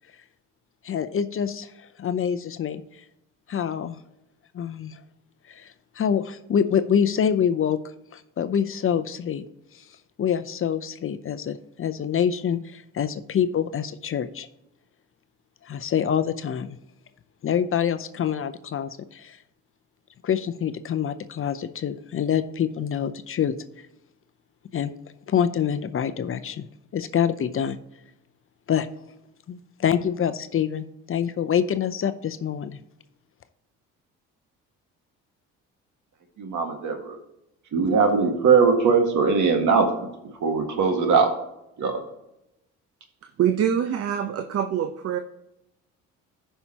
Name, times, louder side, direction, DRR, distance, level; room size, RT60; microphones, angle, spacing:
voice 1, 0.8-2.8 3.5-4.0 4.5-5.0 5.5-7.8 8.1-9.4 9.7-9.8 10.2-14.5 15.6-16.8 17.4-19.4 20.2-23.5 24.7-24.9 25.3-26.7 26.9-27.8 28.7-28.9 29.5-32.8, left 8 dB, 40° left, 11 dB, 0.6 m, -26 dB
voice 2, 36.4-37.2 37.7-39.9 40.4-41.3 41.8-42.0, right 5 dB, 60° right, 4 dB, 1.9 m, -20 dB
voice 3, 43.2-45.2, right 9 dB, 45° right, 8 dB, 0.7 m, -25 dB
14.0 x 5.7 x 2.9 m, 0.86 s
supercardioid pair, 75°, 33 cm